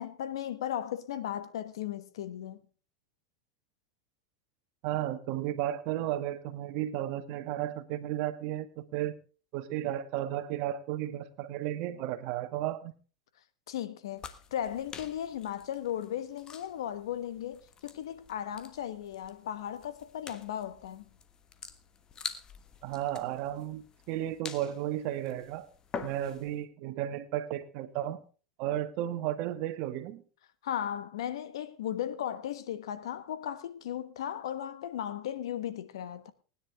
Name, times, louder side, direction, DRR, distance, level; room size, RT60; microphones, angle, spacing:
voice 1, 0.0-2.6 13.7-21.1 30.6-36.3, left 10 dB, 85° left, 1.3 m, -36 dB
voice 2, 4.8-9.1 9.5-12.9 22.8-25.7 26.0-28.2 28.6-30.2, right 13 dB, 60° right, 1.5 m, -34 dB
sound 1, 14.2-26.6, left 6 dB, 30° left, 1.4 m, -47 dB
19.5 x 10.0 x 3.5 m
supercardioid pair, 115°, 3 cm